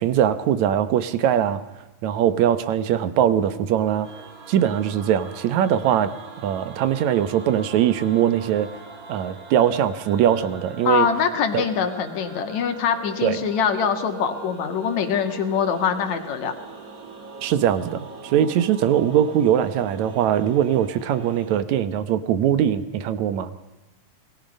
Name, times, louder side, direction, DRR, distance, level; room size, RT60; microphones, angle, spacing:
voice 1, 0.0-1.6 2.0-4.1 4.5-6.1 6.4-8.7 9.1-11.1 11.5-11.6 13.2-13.4 17.4-23.5, right 10 dB, 70° right, 13 dB, 2.1 m, -21 dB
sound 1, 4.0-21.6, right 4 dB, 35° right, 1.6 m, -42 dB
voice 2, 10.9-16.5, left 7 dB, 60° left, 7 dB, 2.9 m, -23 dB
27.5 x 20.0 x 5.3 m, 1.1 s
omnidirectional pair, 3.8 m